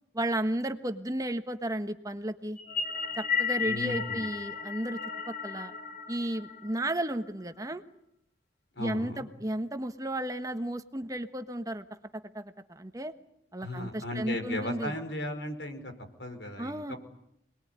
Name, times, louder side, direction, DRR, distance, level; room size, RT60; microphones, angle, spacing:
voice 1, 0.1-2.6 3.2-5.0 5.3-5.7 6.1-7.8 8.8-11.9 12.1-13.1 13.5-15.0 16.6-16.9, right 1 dB, 20° right, 8 dB, 1.3 m, -33 dB
sound 1, 2.6-7.1, left 6 dB, 50° left, 3.7 m, -34 dB
voice 2, 3.6-4.3 8.8-9.3 13.6-15.9 16.2-17.0, left 1 dB, 75° left, 6 dB, 5.3 m, -36 dB
27.0 x 20.5 x 9.7 m, 0.75 s
head